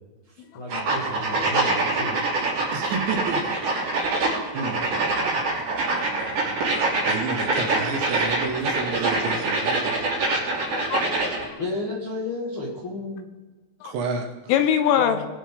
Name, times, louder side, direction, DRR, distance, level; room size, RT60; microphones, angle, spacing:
voice 1, 0.5-2.2 11.6-13.3 15.0-15.3, left 2 dB, 55° left, 1.4 m, -32 dB
sound 1, 0.7-11.5, right 2 dB, 45° right, 4.0 m, -25 dB
voice 2, 2.7-4.0 4.5-4.8 5.1-5.2 7.1-10.0 13.8-14.5, right 4 dB, 70° right, 3.4 m, -30 dB
voice 3, 10.3-11.6 13.8-14.0 14.5-15.2, left 9 dB, 90° left, 3.4 m, -24 dB
22.5 x 8.3 x 3.8 m
omnidirectional pair, 5.8 m